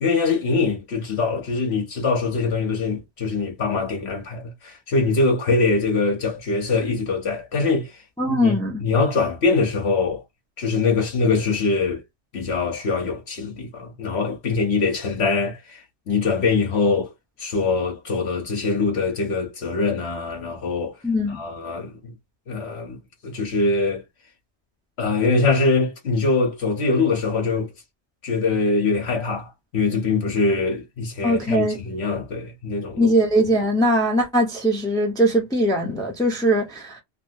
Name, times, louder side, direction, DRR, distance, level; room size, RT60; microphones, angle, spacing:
voice 1, 0.0-7.9 8.3-10.2 10.6-12.0 12.3-17.1 17.4-21.0 21.3-22.1 22.5-24.0 25.0-27.7 28.2-33.1, left 4 dB, 70° left, 1.2 m, -23 dB
voice 2, 8.2-8.8 21.0-21.4 31.2-31.8 33.0-37.0, equal, 5° left, 0.7 m, -21 dB
2.9 x 2.6 x 2.7 m
omnidirectional pair, 1.1 m